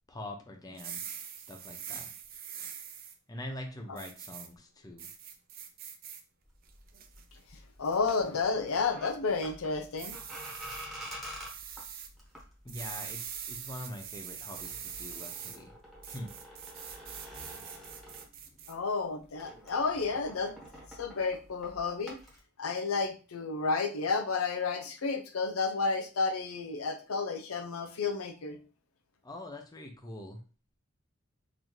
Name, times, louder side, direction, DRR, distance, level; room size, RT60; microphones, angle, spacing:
voice 1, 0.1-1.2 1.5-2.1 3.3-5.1 12.6-15.7 16.0-16.3 18.3-18.6 29.2-30.4, left 1 dB, 20° left, 3 dB, 0.6 m, -44 dB
sound 1, 0.7-3.1 4.0-4.5 5.0-6.2 6.7-7.2 7.8-8.2 10.0-10.9 11.4-12.1 12.7-15.6 16.0-18.7, right 8 dB, 45° right, 0.5 m, -43 dB
sound 2, 6.4-18.8 19.1-22.4, equal, ahead, 1.1 m, -49 dB
voice 2, 7.8-10.2 18.7-20.5 21.0-22.2 22.6-28.6, left 4 dB, 80° left, 6 dB, 0.6 m, -31 dB
4.0 x 2.7 x 3.1 m, 0.35 s
head